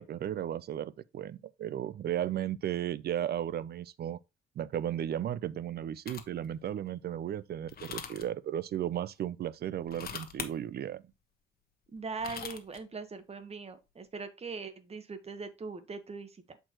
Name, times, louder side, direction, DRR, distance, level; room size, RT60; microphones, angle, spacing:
voice 1, 0.0-4.2 4.6-11.0, right 11 dB, 55° right, 0.4 m, -35 dB
sound 1, 6.1-6.4 7.7-8.3 9.8-10.5 12.0-12.8, left 7 dB, 50° left, 1.1 m, -41 dB
voice 2, 11.9-16.6, right 4 dB, 30° right, 1.2 m, -41 dB
7.6 x 4.6 x 2.9 m
cardioid pair, 90°, 20 cm